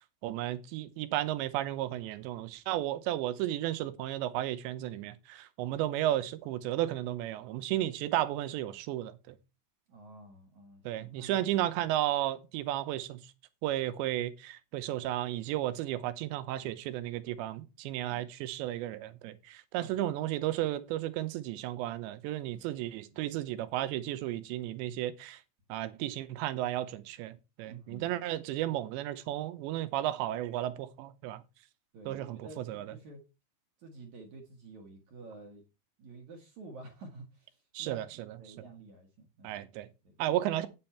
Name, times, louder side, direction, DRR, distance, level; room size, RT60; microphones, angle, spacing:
voice 1, 0.2-9.4 10.9-13.2 13.6-25.4 25.7-31.4 32.1-32.9 37.7-38.1 39.4-39.9 40.2-40.7, right 13 dB, 85° right, 3.1 m, -33 dB
voice 2, 9.9-11.6 19.7-20.1 22.5-23.3 27.6-28.2 31.9-33.2 33.8-35.6 36.0-39.6 40.0-40.2, right 2 dB, 55° right, 2.3 m, -51 dB
8.9 x 8.7 x 4.4 m
omnidirectional pair, 5.0 m